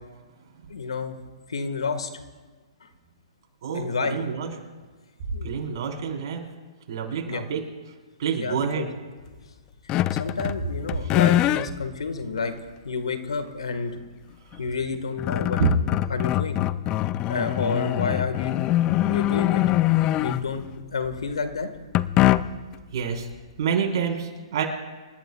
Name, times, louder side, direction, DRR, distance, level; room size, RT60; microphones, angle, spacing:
voice 1, 0.7-1.1 1.5-2.1 2.8-2.9 3.7-4.2 5.3-5.5 7.2-7.4 8.4-8.9 10.1-12.5 12.8-13.9 14.6-15.6 16.1-16.6 17.3-19.6 20.1-20.6 20.9-21.7, left 4 dB, 85° left, 8 dB, 1.7 m, -30 dB
voice 2, 3.6-4.5 5.4-6.4 6.9-7.6 8.2-8.9 11.0-11.1 15.6-15.7 22.9-23.3 23.6-24.6, right 7 dB, 55° right, 0 dB, 4.1 m, -27 dB
sound 1, 9.9-10.6 10.9-11.7 12.4-12.5 14.5-14.6 14.9-20.7 21.9-22.7, left 14 dB, 25° left, 0.4 m, -23 dB
28.0 x 13.5 x 2.4 m, 1.4 s
hypercardioid pair, 140°, 3 cm